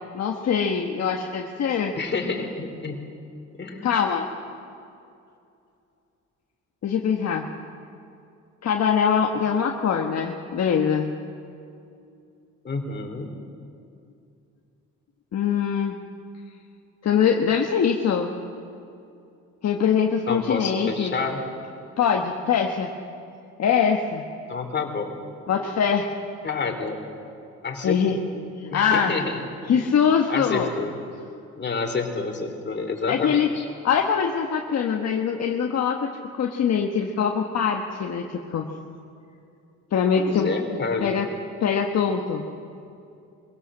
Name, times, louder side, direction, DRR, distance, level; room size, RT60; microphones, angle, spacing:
voice 1, 0.1-1.9 3.8-4.3 6.8-7.5 8.6-11.1 15.3-16.0 17.0-18.3 19.6-21.1 22.0-22.9 23.6-24.2 25.5-26.1 27.8-28.2 28.6-29.1 29.7-30.7 33.1-33.5 33.8-36.0 36.3-38.7 39.9-40.5 41.0-41.3 41.6-42.4, left 7 dB, 60° left, 2 dB, 1.4 m, -23 dB
voice 2, 1.9-3.0 3.6-3.9 12.6-13.3 20.3-21.4 24.5-25.2 26.4-27.0 27.6-28.2 28.7-29.4 29.7-29.9 30.3-30.9 31.5-33.7 40.2-41.2, left 4 dB, 35° left, 3 dB, 3.3 m, -29 dB
23.0 x 17.0 x 7.6 m, 2.6 s
cardioid pair, 90°, 30 cm